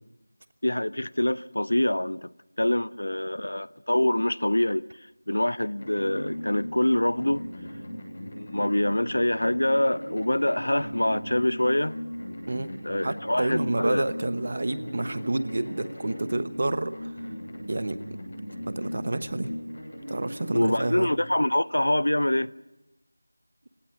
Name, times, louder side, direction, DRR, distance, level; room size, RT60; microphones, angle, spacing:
voice 1, 0.6-2.3 2.6-4.8 5.3-7.5 8.3-12.0 12.8-14.0 20.5-22.5, left 1 dB, 80° left, 0.6 m, -25 dB
sound 1, 5.8-21.1, equal, 35° left, 7.7 m, -38 dB
voice 2, 13.0-17.1 17.7-18.0 18.7-19.5 20.1-21.1, right 2 dB, 40° right, 1.1 m, -29 dB
27.0 x 17.5 x 6.0 m
figure-of-eight pair, 175°, 0 cm